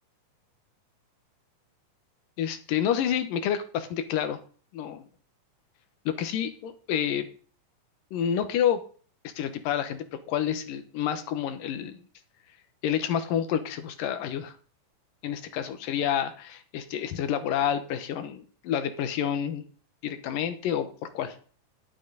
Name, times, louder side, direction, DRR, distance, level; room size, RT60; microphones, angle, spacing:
voice 1, 2.4-4.4 4.7-5.1 6.1-7.3 8.1-8.8 9.2-12.0 12.8-14.5 15.2-19.6 20.0-21.4, left 9 dB, 90° left, 10 dB, 2.8 m, -29 dB
11.0 x 9.2 x 3.9 m, 0.42 s
omnidirectional pair, 3.9 m